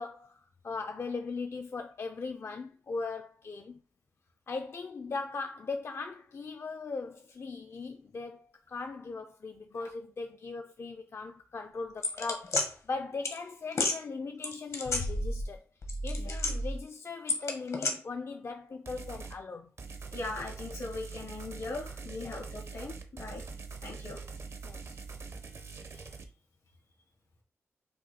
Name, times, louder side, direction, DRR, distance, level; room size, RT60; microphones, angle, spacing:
voice 1, 0.0-3.8 4.5-15.6 16.0-19.7 22.2-22.5 24.6-25.0, left 4 dB, 55° left, 0.5 m, -39 dB
sound 1, 12.0-12.7 13.2-13.4 13.7-14.0 14.4-15.5 15.8-16.8 17.3-17.9, left 2 dB, 70° left, 1.1 m, -31 dB
sound 2, 18.9-19.4 19.8-26.2, right 4 dB, 55° right, 0.7 m, -43 dB
voice 2, 20.1-23.4 23.8-24.2, left 2 dB, 90° left, 1.8 m, -39 dB
5.4 x 2.3 x 4.1 m
cardioid pair, 60°, 5 cm